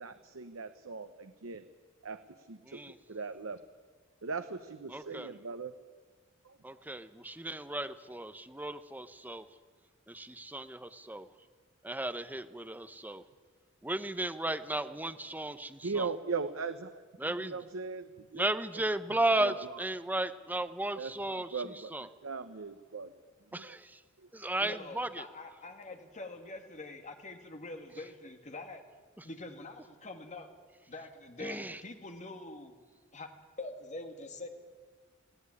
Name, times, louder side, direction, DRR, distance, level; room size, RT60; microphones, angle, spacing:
voice 1, 0.0-1.7 2.0-3.6 4.2-5.8 6.4-6.6 15.8-17.0 17.4-18.4 18.9-19.0 19.4-19.7 21.0-21.9 22.2-23.1 23.5-23.8 24.2-24.3, right 4 dB, 85° right, 9 dB, 0.9 m, -39 dB
voice 2, 2.6-3.0 4.9-5.3 6.6-9.5 10.1-11.3 11.8-13.2 13.8-16.1 17.2-17.6 18.3-22.1 23.5-24.0 24.3-25.3 29.2-29.3 31.4-31.8, right 1 dB, 10° right, 11 dB, 0.8 m, -35 dB
voice 3, 24.6-28.8 29.2-30.5 30.9-32.8 33.1-33.3 33.6-34.5, left 2 dB, 35° left, 5 dB, 2.1 m, -44 dB
19.5 x 16.0 x 9.8 m, 1.5 s
head